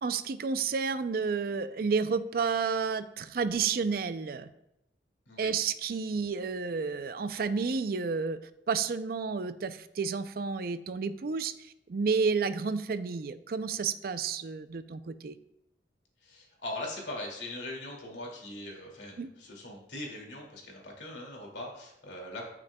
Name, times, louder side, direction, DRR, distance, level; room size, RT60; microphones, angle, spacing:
voice 1, 0.0-4.5 5.4-8.4 8.7-11.5 11.9-15.3 19.2-19.3, right 5 dB, 55° right, 12 dB, 0.4 m, -31 dB
voice 2, 16.2-22.5, left 1 dB, 85° left, -1 dB, 2.3 m, -41 dB
12.5 x 6.1 x 2.2 m, 0.85 s
head